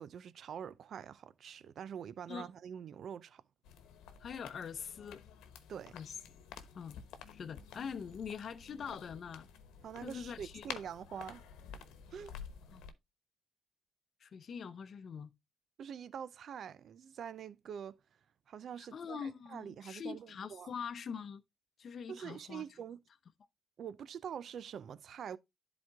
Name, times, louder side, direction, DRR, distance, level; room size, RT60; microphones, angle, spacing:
voice 1, 0.0-3.4 5.7-5.9 9.8-11.4 12.1-12.3 15.8-18.0 18.5-20.7 22.1-23.0 23.8-25.4, right 8 dB, 60° right, 0.6 m, -45 dB
sound 1, 3.6-12.9, left 8 dB, 90° left, 1.0 m, -51 dB
voice 2, 4.2-5.2 5.9-6.1 6.7-7.0 7.3-9.5 10.0-10.7 12.7-12.8 14.2-15.3 18.8-21.4 21.8-22.6, left 6 dB, 55° left, 0.8 m, -43 dB
10.5 x 4.2 x 3.5 m
cardioid pair, 90°, 0 cm